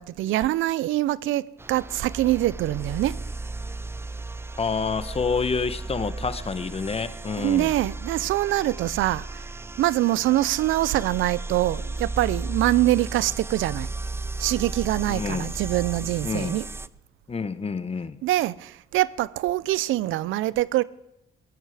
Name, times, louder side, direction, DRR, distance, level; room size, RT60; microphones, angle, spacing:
voice 1, 0.0-1.4 1.7-3.2 7.4-9.4 9.8-13.9 14.4-16.6 18.2-20.8, right 15 dB, 85° right, 0.5 m, -24 dB
sound 1, 1.6-16.9, right 2 dB, 10° right, 0.5 m, -35 dB
voice 2, 4.6-7.8 15.1-15.5 16.2-16.6 17.3-18.2, left 5 dB, 30° left, 1.0 m, -28 dB
17.0 x 13.5 x 4.9 m
cardioid pair, 90°, 20 cm